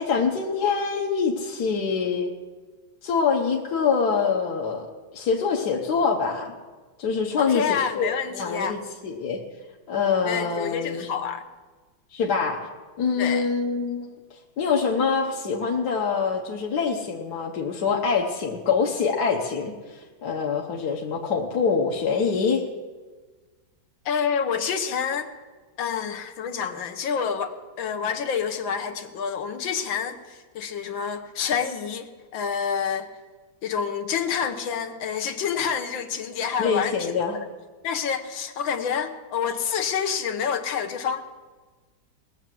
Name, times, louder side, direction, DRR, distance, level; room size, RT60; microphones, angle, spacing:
voice 1, 0.0-2.3 3.0-4.9 5.1-6.5 7.0-9.4 9.9-11.0 12.1-12.7 13.0-14.1 14.6-22.6 36.6-37.4, left 5 dB, 55° left, -1 dB, 1.5 m, -25 dB
voice 2, 7.4-8.8 10.2-11.4 13.2-13.5 24.0-25.3 25.8-33.1 33.6-37.5 37.8-41.2, left 7 dB, 70° left, 7 dB, 1.7 m, -28 dB
19.5 x 6.9 x 7.6 m, 1.3 s
omnidirectional pair, 2.2 m